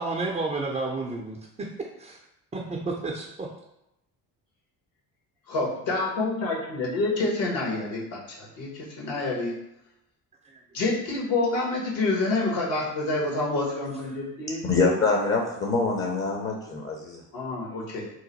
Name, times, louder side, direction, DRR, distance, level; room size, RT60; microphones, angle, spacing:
voice 1, 0.0-1.7 2.0-2.2 2.5-3.5 10.4-10.6, right 3 dB, 15° right, -1 dB, 0.4 m, -31 dB
voice 2, 5.5-9.5 10.7-14.6 17.3-18.1, left 2 dB, 65° left, -2 dB, 1.3 m, -28 dB
voice 3, 14.6-17.2, left 3 dB, 25° left, 0 dB, 0.7 m, -25 dB
3.0 x 2.2 x 4.1 m, 0.86 s
hypercardioid pair, 60°, 48 cm